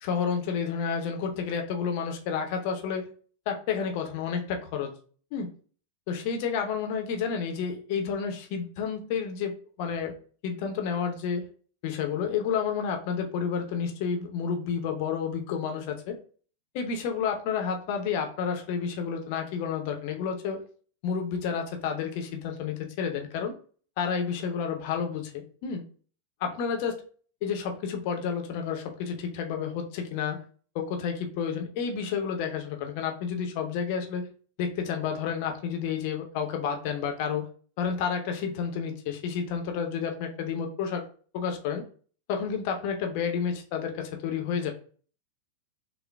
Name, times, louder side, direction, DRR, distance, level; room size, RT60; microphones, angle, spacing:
voice 1, 0.0-3.1 3.5-4.9 5.3-5.5 6.1-10.1 10.4-11.5 11.8-16.1 16.7-20.6 21.0-23.5 24.0-25.8 26.4-27.0 27.4-30.4 30.7-34.3 34.6-37.5 37.8-41.0 41.3-41.8 42.3-44.7, left 6 dB, 45° left, 4 dB, 0.7 m, -30 dB
6.4 x 2.2 x 2.2 m, 0.43 s
figure-of-eight pair, 90°, 0 cm